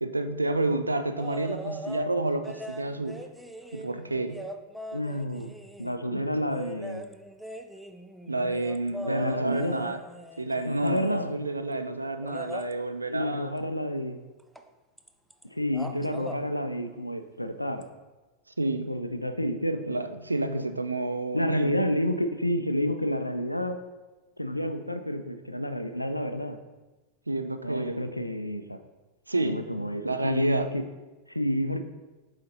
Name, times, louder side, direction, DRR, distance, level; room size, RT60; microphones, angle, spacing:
voice 1, 0.0-3.2 3.7-4.4 6.1-6.5 8.3-10.0 10.4-13.5 18.6-18.9 19.9-21.7 27.3-28.1 29.3-30.7, right 2 dB, 80° right, 8 dB, 0.4 m, -30 dB
sound 1, 1.2-2.1 2.4-6.0 6.5-11.3 12.2-12.7 14.5-14.7 15.0-15.4 15.7-16.4 17.8-17.9, right 1 dB, ahead, 0.4 m, -41 dB
voice 2, 4.9-7.1 9.0-9.8 10.6-11.3 13.1-14.2 15.5-17.8 18.9-20.0 20.4-20.6 21.3-23.8 24.4-26.6 27.6-28.8 29.4-30.8 31.3-31.8, equal, 85° left, 9 dB, 0.4 m, -29 dB
7.5 x 5.0 x 2.8 m, 1.1 s
figure-of-eight pair, 90°, 0 cm